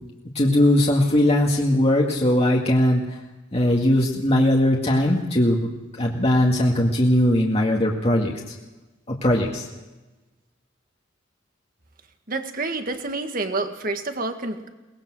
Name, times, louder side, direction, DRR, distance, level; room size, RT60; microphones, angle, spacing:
voice 1, 0.4-3.0 3.5-5.7 6.0-8.5 9.2-9.7, left 1 dB, 30° left, -2 dB, 2.0 m, -19 dB
voice 2, 12.3-14.7, right 3 dB, 45° right, 6 dB, 1.8 m, -28 dB
22.5 x 20.0 x 6.3 m, 1.2 s
head